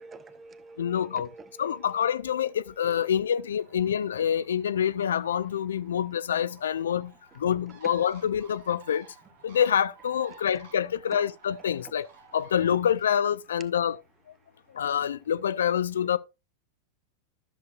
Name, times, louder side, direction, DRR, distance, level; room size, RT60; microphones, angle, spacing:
voice 1, 0.0-3.3 11.8-11.9, right 3 dB, 20° right, 0.8 m, -49 dB
voice 2, 0.8-1.3 1.6-7.1 7.4-9.0 9.4-12.1 12.3-14.0 14.8-16.2, left 9 dB, 65° left, 0.4 m, -26 dB
Bird, 3.6-12.8, right 6 dB, 55° right, 1.6 m, -55 dB
13.0 x 6.6 x 2.4 m
figure-of-eight pair, 90°, 0 cm